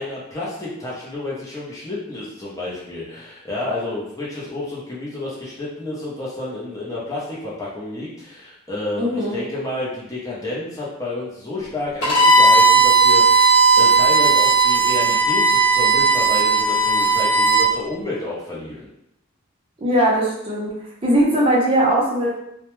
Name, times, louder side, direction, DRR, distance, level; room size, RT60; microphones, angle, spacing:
voice 1, 0.0-18.9, left 2 dB, 15° left, -6 dB, 0.6 m, -30 dB
voice 2, 9.0-9.4 19.8-20.7 21.0-22.3, right 1 dB, 25° right, -5 dB, 0.5 m, -19 dB
Bowed string instrument, 12.0-17.7, right 3 dB, 60° left, 0.9 m, -15 dB
2.1 x 2.1 x 3.0 m, 0.79 s
head